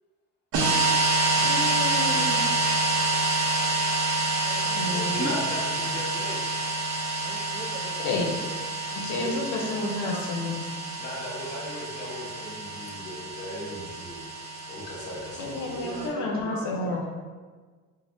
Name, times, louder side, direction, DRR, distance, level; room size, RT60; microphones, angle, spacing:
sound 1, 0.5-16.1, right 3 dB, 80° right, 0.5 m, -28 dB
voice 1, 1.4-2.4 4.7-5.2 8.0-8.4 9.0-10.6 15.4-17.0, left 2 dB, 75° left, 1 dB, 0.5 m, -30 dB
voice 2, 4.4-5.9 7.2-8.3 9.1-10.6 15.8-17.0, right 3 dB, 30° right, -1 dB, 0.4 m, -41 dB
voice 3, 5.1-6.8 11.0-14.2 14.7-16.1, left 1 dB, 35° left, -4 dB, 1.0 m, -37 dB
3.2 x 2.1 x 2.5 m, 1.4 s
cardioid pair, 90°, 30 cm